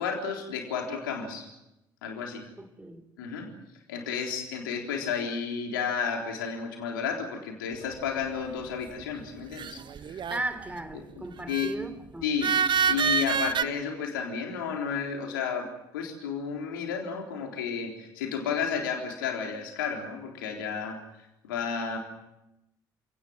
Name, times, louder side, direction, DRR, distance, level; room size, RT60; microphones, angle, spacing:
voice 1, 0.0-1.5 2.0-2.4 3.2-3.5 3.9-9.8 10.1-10.2 10.9-11.7 12.2-12.5 12.9-15.7 15.9-21.0 21.4-22.0, left 6 dB, 80° left, 2 dB, 3.8 m, -32 dB
voice 2, 2.6-3.0 10.3-12.3, right 2 dB, 15° right, 10 dB, 3.2 m, -36 dB
sound 1, 9.6-10.6 11.5-11.7 12.4-13.6, right 7 dB, 45° right, 1.1 m, -26 dB
28.0 x 18.0 x 7.6 m, 0.91 s
figure-of-eight pair, 50°, 11 cm